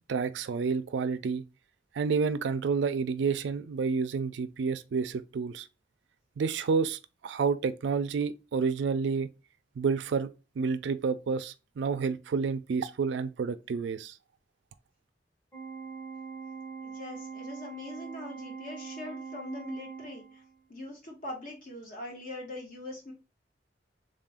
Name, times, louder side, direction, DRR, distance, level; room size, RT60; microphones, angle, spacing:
voice 1, 0.1-1.4 1.9-5.7 6.4-9.3 9.8-10.3 10.6-14.2, right 5 dB, 70° right, 0.3 m, -29 dB
Organ, 15.5-20.6, right 5 dB, 15° left, 0.9 m, -42 dB
voice 2, 16.8-20.4 20.7-23.1, left 2 dB, 50° left, 1.3 m, -42 dB
3.7 x 2.5 x 3.5 m
head